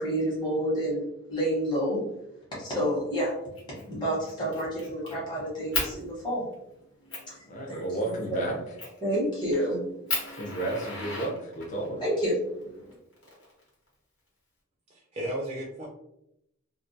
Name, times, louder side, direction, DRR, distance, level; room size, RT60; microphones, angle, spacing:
voice 1, 0.0-2.1 2.5-3.4 3.7-6.5 7.3-7.4 7.7-8.4 9.0-10.6 11.8-13.0, equal, 20° left, -7 dB, 0.9 m, -30 dB
Fire, 3.6-3.8 4.2-5.1 5.7-5.9 6.5-6.6 7.1-7.3 8.8-9.1 9.6-9.7 10.1-11.9 12.9-13.9, left 2 dB, 60° left, 0.9 m, -34 dB
voice 2, 7.4-8.6 10.4-12.1, right 2 dB, 35° left, -2 dB, 0.4 m, -32 dB
voice 3, 14.9-15.9, right 1 dB, 30° right, -2 dB, 0.3 m, -34 dB
2.2 x 2.1 x 2.6 m, 0.82 s
head